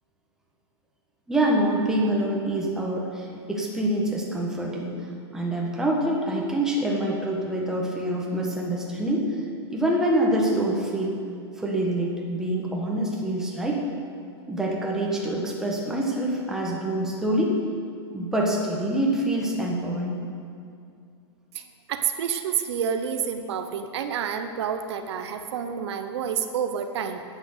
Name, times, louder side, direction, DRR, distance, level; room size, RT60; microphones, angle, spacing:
voice 1, 1.3-4.9 5.3-9.4 9.7-11.2 11.6-13.8 14.5-17.5 18.1-20.2, right 1 dB, 5° right, -2 dB, 1.3 m, -26 dB
voice 2, 21.5-27.2, right 7 dB, 70° right, 7 dB, 0.8 m, -29 dB
9.8 x 8.5 x 6.7 m, 2.4 s
supercardioid pair, 155°, 15 cm